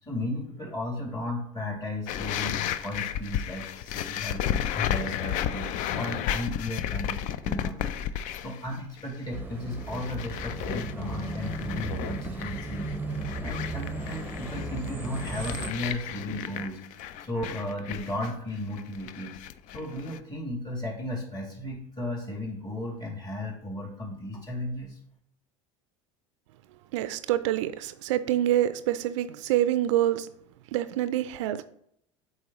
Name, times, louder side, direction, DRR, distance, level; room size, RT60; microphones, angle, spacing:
voice 1, 0.0-12.9 13.4-19.3 19.7-25.0, left 1 dB, 25° left, -1 dB, 2.5 m, -35 dB
sound 1, 2.1-8.7 9.0-9.4 9.7-20.2, left 10 dB, 55° left, 0.4 m, -33 dB
sound 2, 9.3-15.7, right 3 dB, 10° right, 0.7 m, -36 dB
voice 2, 26.9-30.3 30.7-31.6, right 12 dB, 70° right, 13 dB, 0.4 m, -26 dB
7.7 x 4.0 x 3.0 m, 0.71 s
hypercardioid pair, 80°, 16 cm